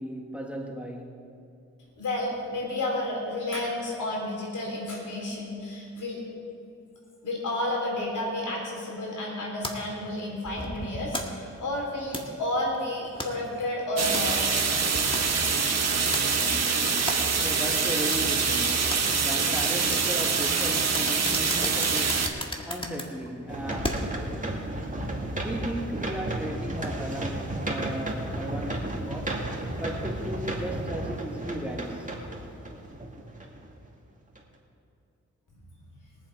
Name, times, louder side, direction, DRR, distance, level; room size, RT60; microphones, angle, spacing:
voice 1, 0.0-1.4 17.4-24.2 25.4-29.5 29.8-32.2, right 1 dB, 5° right, 1 dB, 1.6 m, -36 dB
voice 2, 2.0-6.2 7.2-14.5, left 1 dB, 80° left, -2 dB, 3.7 m, -31 dB
sound 1, 9.6-24.3, left 1 dB, 15° left, 1.8 m, -38 dB
sound 2, 14.0-22.3, right 5 dB, 60° right, 1.4 m, -25 dB
sound 3, 23.5-33.8 34.3-34.4, right 1 dB, 25° right, 2.2 m, -33 dB
22.0 x 7.6 x 4.8 m, 2.7 s
cardioid pair, 60°, 30 cm